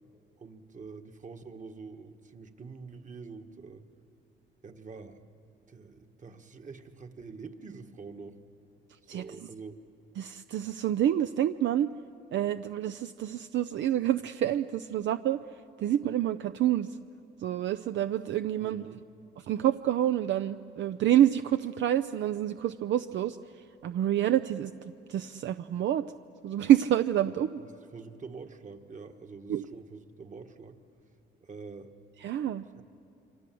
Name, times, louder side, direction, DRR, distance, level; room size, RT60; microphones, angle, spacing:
voice 1, 0.4-3.9 4.6-5.2 5.7-8.4 9.0-9.8 18.6-19.0 27.6-30.8 31.4-31.9 32.7-32.8, right 4 dB, 40° right, 7 dB, 1.7 m, -46 dB
voice 2, 10.2-11.9 12.3-15.4 15.8-17.0 17.4-18.8 19.4-24.7 25.1-26.0 26.4-27.6 29.5-29.7 32.2-32.7, right 11 dB, 70° right, 10 dB, 0.6 m, -27 dB
27.0 x 25.0 x 7.8 m, 2.8 s
cardioid pair, 90°, 20 cm